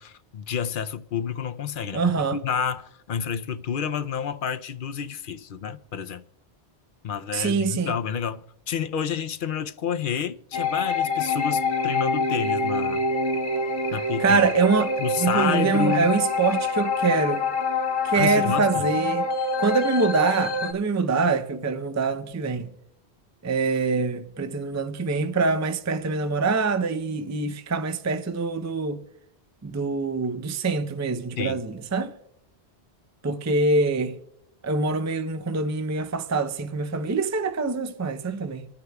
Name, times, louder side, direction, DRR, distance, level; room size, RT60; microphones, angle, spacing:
voice 1, 0.0-2.0 2.3-6.2 7.0-13.1 13.9-14.4 15.0-16.1 18.1-18.9 31.4-31.6, left 7 dB, 60° left, 0.7 m, -29 dB
voice 2, 1.9-2.4 7.3-7.9 14.2-17.5 18.0-19.3 19.6-22.7 23.4-29.0 29.6-32.1 33.2-34.2 34.6-38.7, right 4 dB, 20° right, 0.5 m, -24 dB
sound 1, 10.5-20.7, left 3 dB, 75° left, 1.3 m, -26 dB
27.5 x 9.5 x 2.3 m
omnidirectional pair, 1.1 m